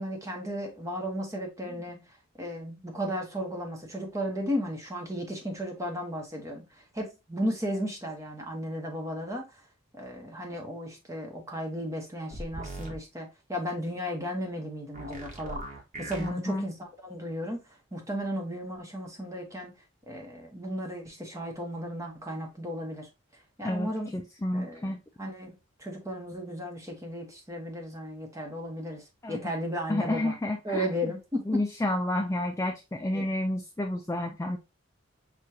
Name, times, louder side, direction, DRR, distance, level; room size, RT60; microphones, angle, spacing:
voice 1, 0.0-9.6 9.9-15.6 16.0-17.6 17.9-19.8 20.1-23.1 23.6-24.1 24.5-25.5 25.8-30.3 30.6-31.6 33.1-33.3, equal, 15° right, 1.0 m, -35 dB
sound 1, 12.3-13.0 14.9-16.3, right 1 dB, 40° right, 1.1 m, -39 dB
voice 2, 16.2-16.7 23.6-25.0 29.2-29.4 29.9-30.9 31.5-34.6, left 1 dB, 15° left, 0.3 m, -30 dB
6.5 x 2.4 x 2.7 m
head